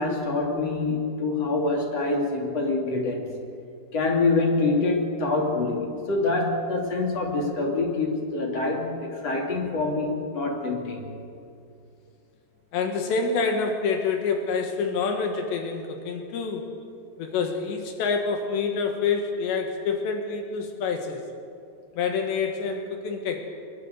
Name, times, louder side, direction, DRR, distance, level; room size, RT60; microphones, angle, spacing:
voice 1, 0.0-3.3 3.9-11.0, left 3 dB, 40° left, 2 dB, 3.3 m, -25 dB
voice 2, 12.7-16.7 17.2-21.3 22.0-23.4, left 5 dB, 75° left, 4 dB, 3.9 m, -27 dB
23.0 x 22.0 x 8.1 m, 2.4 s
omnidirectional pair, 5.1 m